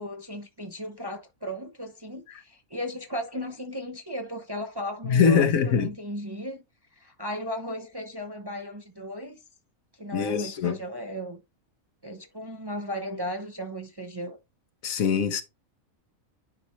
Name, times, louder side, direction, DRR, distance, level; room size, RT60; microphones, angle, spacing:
voice 1, 0.0-6.6 7.0-9.4 10.0-11.4 12.0-14.4, equal, 25° right, 0.6 m, -36 dB
voice 2, 5.0-5.9 10.1-10.8 14.8-15.4, left 6 dB, 75° left, 1.4 m, -23 dB
10.5 x 4.3 x 3.1 m
omnidirectional pair, 1.4 m